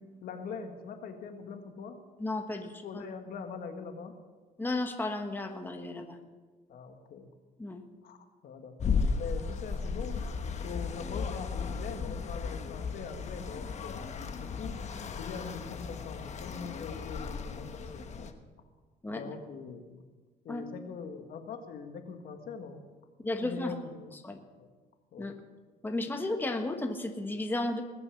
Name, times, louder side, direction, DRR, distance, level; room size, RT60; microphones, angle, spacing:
voice 1, 0.0-2.0 2.8-4.1 6.7-7.3 8.0-8.2 8.4-10.2 10.6-14.0 14.4-14.8 15.2-18.3 19.1-20.0 20.5-22.8 23.4-24.1 24.6-24.7 25.1-25.3, left 5 dB, 60° left, 6 dB, 1.7 m, -42 dB
voice 2, 2.2-3.0 4.6-6.2 7.6-7.8 19.0-19.2 20.5-20.6 23.2-23.7 24.2-24.4 25.2-25.3 25.8-27.8, left 2 dB, 10° left, 4 dB, 1.3 m, -33 dB
sound 1, 8.8-18.3, left 5 dB, 40° left, 1.2 m, -35 dB
20.5 x 7.0 x 7.1 m, 1.3 s
cardioid pair, 110°, 17 cm